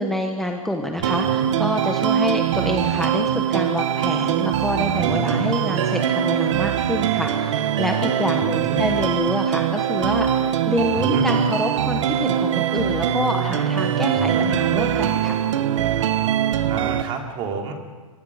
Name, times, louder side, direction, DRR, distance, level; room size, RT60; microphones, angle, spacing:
voice 1, 0.0-15.4, left 1 dB, ahead, 2 dB, 1.1 m, -27 dB
voice 2, 1.0-1.5 5.0-5.4 8.4-8.8 11.0-11.3 14.1-14.6 16.7-17.7, right 4 dB, 30° right, 2 dB, 3.4 m, -30 dB
sound 1, 1.0-17.0, right 9 dB, 60° right, 1.4 m, -22 dB
27.0 x 24.5 x 5.0 m, 1.4 s
hypercardioid pair, 150°, 18 cm